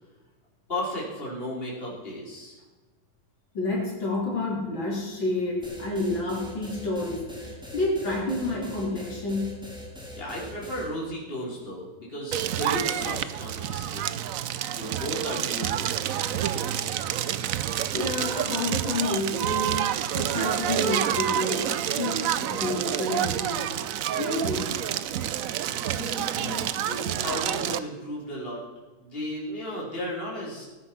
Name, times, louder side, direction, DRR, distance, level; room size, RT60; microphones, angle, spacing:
voice 1, 0.7-2.6 10.1-14.2 14.7-15.9 25.9-28.6 29.0-30.6, left 1 dB, 30° left, -4 dB, 3.9 m, -34 dB
voice 2, 3.5-9.5 17.9-23.7 24.2-24.7, left 2 dB, 80° left, -3 dB, 4.4 m, -29 dB
sound 1, 5.6-10.9, left 1 dB, ahead, 2.5 m, -42 dB
Crackle, 12.3-27.8, right 10 dB, 65° right, 0.8 m, -28 dB
18.5 x 9.7 x 5.9 m, 1.2 s
omnidirectional pair, 2.1 m